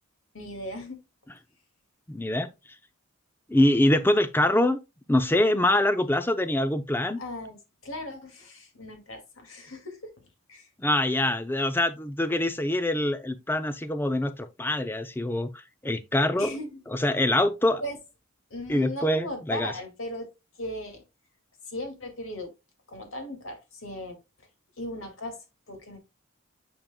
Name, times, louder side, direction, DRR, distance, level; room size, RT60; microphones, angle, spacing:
voice 1, 0.3-1.0 7.2-7.6 7.8-10.0 10.5-10.7 16.4-16.8 17.8-18.0 18.5-20.3 20.6-21.0 21.7-22.5 22.9-24.2 24.8-25.4 25.7-26.0, left 1 dB, 75° left, 2.2 m, -37 dB
voice 2, 2.1-2.5 3.5-4.8 5.1-7.2 10.8-15.5 15.8-16.5 16.9-17.8 18.7-19.7, left 1 dB, 10° left, 0.5 m, -24 dB
8.9 x 5.2 x 2.2 m
head